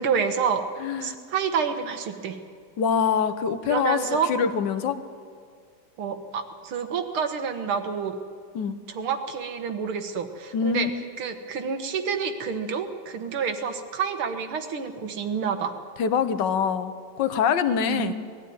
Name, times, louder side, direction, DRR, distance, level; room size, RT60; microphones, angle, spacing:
voice 1, 0.0-0.6 1.0-2.4 3.7-4.3 6.0-8.2 8.9-10.9 11.2-15.8 17.9-18.1, right 6 dB, 90° right, 7 dB, 2.2 m, -28 dB
voice 2, 0.8-1.2 2.8-4.0 4.3-5.0 8.5-8.8 10.5-10.9 16.0-18.1, left 7 dB, 65° left, 10 dB, 1.6 m, -24 dB
20.5 x 13.5 x 9.3 m, 2.1 s
omnidirectional pair, 2.3 m